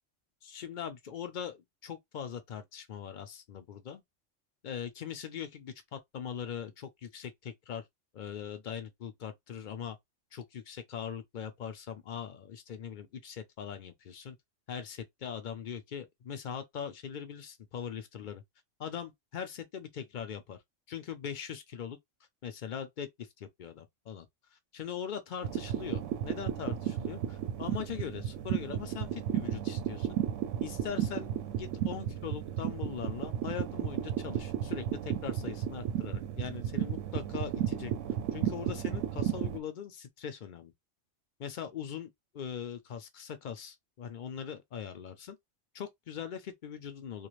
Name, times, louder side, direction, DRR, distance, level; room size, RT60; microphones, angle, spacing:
voice 1, 0.4-4.0 4.6-7.8 8.1-10.0 10.3-14.4 14.7-18.4 18.8-20.6 20.9-22.0 22.4-24.3 24.5-30.2 30.6-37.9 38.3-40.7 41.4-45.4 45.7-47.3, left 8 dB, 55° left, 0.5 m, -41 dB
sound 1, 25.4-39.6, right 10 dB, 80° right, 0.9 m, -34 dB
2.4 x 2.4 x 3.0 m
omnidirectional pair, 1.3 m